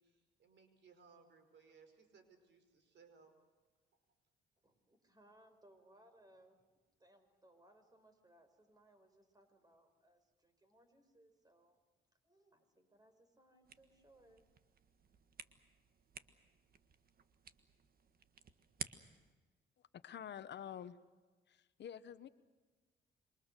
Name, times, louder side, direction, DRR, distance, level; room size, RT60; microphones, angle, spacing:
voice 1, 0.0-3.3, right 5 dB, 65° right, 7 dB, 5.1 m, -64 dB
voice 2, 4.6-6.6 7.0-11.8 12.2-14.5, right 1 dB, 20° right, 8 dB, 5.0 m, -67 dB
sound 1, 13.6-19.3, right 6 dB, 50° right, 1.6 m, -53 dB
voice 3, 19.9-21.0 21.5-22.3, left 9 dB, 60° left, 12 dB, 1.1 m, -48 dB
27.0 x 24.0 x 6.8 m, 1.3 s
cardioid pair, 90°, 20 cm